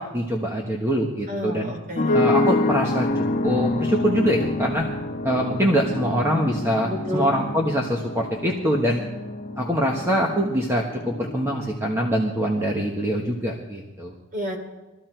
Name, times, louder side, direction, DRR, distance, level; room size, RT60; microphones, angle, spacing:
voice 1, 0.0-1.7 2.1-4.9 5.2-9.0 9.6-14.1, equal, 10° right, -1 dB, 1.3 m, -24 dB
voice 2, 1.3-2.1 6.8-7.3 14.3-14.6, equal, 40° right, 2 dB, 3.3 m, -30 dB
sound 1, 2.0-12.0, left 2 dB, 40° left, 1.3 m, -27 dB
22.0 x 14.0 x 4.6 m, 1.1 s
head